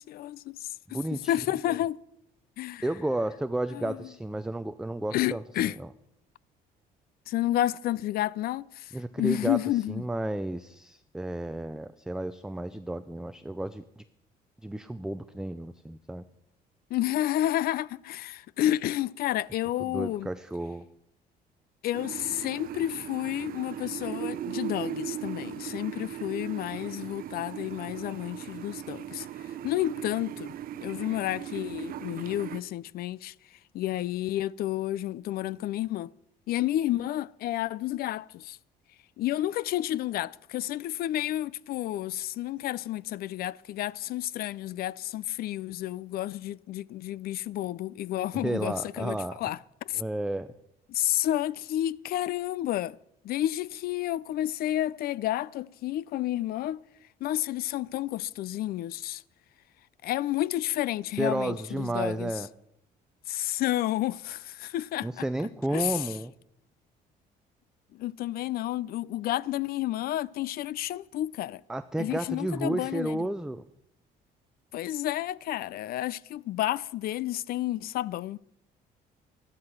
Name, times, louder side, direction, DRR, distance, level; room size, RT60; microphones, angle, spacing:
voice 1, 0.0-2.0 2.6-2.9 3.7-4.1 5.1-5.8 7.3-10.0 16.9-20.3 21.8-36.1 36.5-38.6 39.2-50.0 50.9-53.0 53.2-56.8 57.2-59.2 60.0-62.4 63.3-65.2 65.7-66.1 67.9-71.6 72.0-73.3 74.7-78.4, left 14 dB, 65° left, 0.4 m, -31 dB
voice 2, 0.9-1.3 2.8-5.9 8.9-9.6 9.9-13.8 14.6-16.2 19.8-20.8 48.3-49.4 50.0-50.5 61.2-62.5 65.0-66.3 71.7-73.6, right 1 dB, 5° right, 0.5 m, -32 dB
sound 1, 21.9-32.6, right 11 dB, 60° right, 0.7 m, -38 dB
13.5 x 12.5 x 5.9 m
cardioid pair, 110°, 17 cm